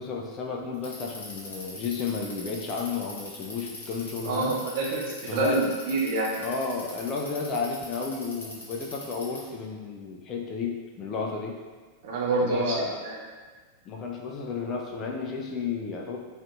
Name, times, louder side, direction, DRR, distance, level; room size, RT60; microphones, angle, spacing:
voice 1, 0.0-4.5 5.3-5.6 6.4-11.6 12.4-13.0 13.9-16.2, left 4 dB, 30° left, 0 dB, 0.3 m, -32 dB
Bicycle, 0.7-9.5, left 2 dB, 75° left, 0.6 m, -41 dB
voice 2, 4.3-6.3 12.0-12.8 13.0-13.2, right 3 dB, 50° right, -3 dB, 0.5 m, -27 dB
2.5 x 2.4 x 2.3 m, 1.4 s
figure-of-eight pair, 90°, 0 cm